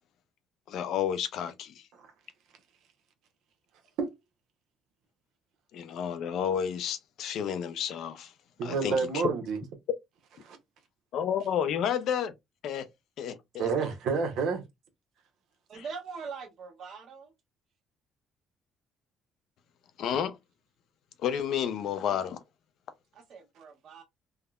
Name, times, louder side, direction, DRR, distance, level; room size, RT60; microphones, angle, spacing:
voice 1, 0.7-1.8 5.7-8.3 8.6-9.2 11.1-12.3 12.6-12.9 13.2-13.7 15.7-15.8 20.0-20.4 21.2-22.4, left 8 dB, 65° left, 0.5 m, -31 dB
voice 2, 8.6-9.6 10.4-10.6 13.6-14.6, right 5 dB, 70° right, 0.8 m, -29 dB
voice 3, 13.6-13.9 15.7-17.3 23.1-24.0, right 5 dB, 55° right, 1.2 m, -42 dB
3.5 x 2.1 x 2.3 m
cardioid pair, 115°, 0 cm